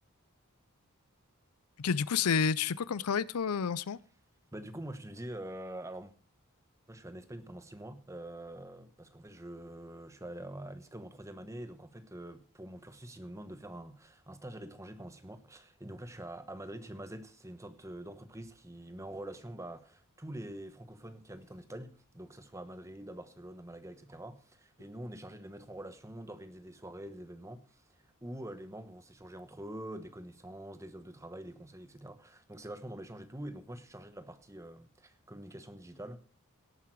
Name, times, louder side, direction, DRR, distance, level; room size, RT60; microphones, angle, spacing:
voice 1, 1.8-4.0, left 6 dB, 90° left, 0.5 m, -30 dB
voice 2, 4.5-6.1 6.9-27.8 28.2-36.2, right 1 dB, 15° right, 1.1 m, -45 dB
18.0 x 8.5 x 4.7 m
head